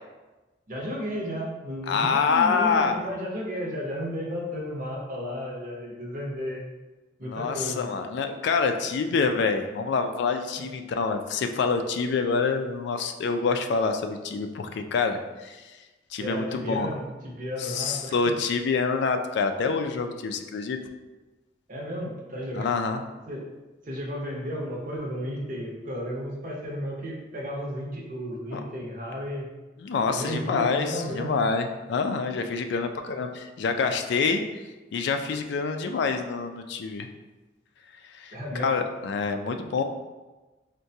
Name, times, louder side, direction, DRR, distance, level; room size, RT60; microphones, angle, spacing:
voice 1, 0.7-6.6 7.2-7.8 16.2-18.3 21.7-22.7 23.3-23.5 23.9-29.5 30.1-31.5 38.3-38.7, equal, 45° right, -2 dB, 0.7 m, -33 dB
voice 2, 1.9-3.0 7.2-15.6 16.1-16.9 17.6-20.8 22.5-23.0 28.5-28.6 29.8-34.4 34.9-37.1 38.2-39.8, left 5 dB, 65° left, 6 dB, 0.3 m, -26 dB
4.6 x 2.2 x 2.7 m, 1.2 s
head